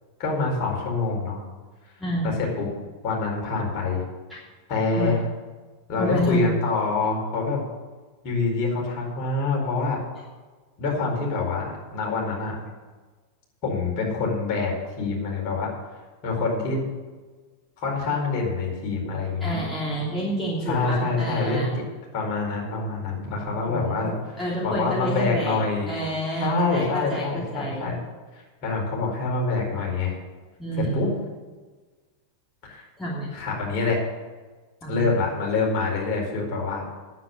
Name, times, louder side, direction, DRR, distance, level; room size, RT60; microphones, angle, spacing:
voice 1, 0.2-1.4 2.2-2.7 3.0-4.0 4.7-5.2 5.9-7.6 8.2-10.0 10.8-12.6 13.6-15.7 16.2-16.8 17.8-19.6 20.6-21.7 22.1-24.1 24.6-25.9 26.4-28.0 28.6-30.2 30.8-31.1 32.6-32.8 33.3-34.0 34.8-36.8, left 3 dB, 40° left, -2 dB, 4.6 m, -26 dB
voice 2, 2.0-2.3 4.3-4.4 5.0-5.2 6.0-6.5 19.4-21.7 23.7-24.1 24.4-27.8 30.6-31.0 33.0-33.3 34.8-35.1, right 1 dB, 10° left, -7 dB, 3.0 m, -29 dB
9.8 x 8.3 x 8.4 m, 1.3 s
figure-of-eight pair, 90°, 0 cm